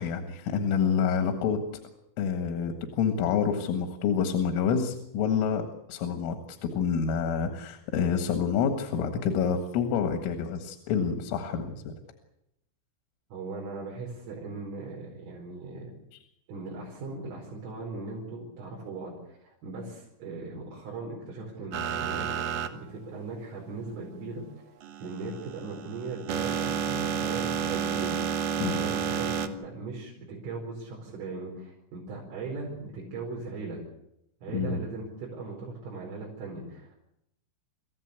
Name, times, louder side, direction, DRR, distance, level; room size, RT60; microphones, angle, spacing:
voice 1, 0.0-1.6 2.2-5.6 5.9-12.0 28.6-28.8 34.5-34.8, left 6 dB, 85° left, 6 dB, 4.3 m, -28 dB
voice 2, 13.3-15.9 16.5-22.3 22.7-24.5 25.0-28.2 28.6-33.8 34.4-37.0, right 3 dB, 80° right, -2 dB, 7.3 m, -39 dB
sound 1, 21.7-22.7 24.8-29.5, right 7 dB, 60° right, 2.4 m, -30 dB
28.0 x 15.5 x 8.2 m, 0.82 s
omnidirectional pair, 5.7 m